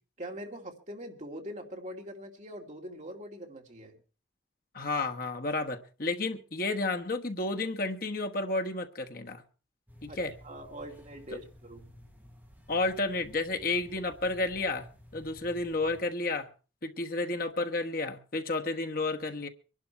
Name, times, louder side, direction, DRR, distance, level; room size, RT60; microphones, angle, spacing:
voice 1, 0.2-4.0 10.1-11.9, equal, 40° right, 2.6 m, -43 dB
voice 2, 4.7-9.4 10.0-10.3 12.7-16.5 16.8-19.5, left 2 dB, 50° left, 1.2 m, -31 dB
sound 1, 9.9-16.0, left 1 dB, 10° right, 5.3 m, -54 dB
23.5 x 11.5 x 4.5 m
head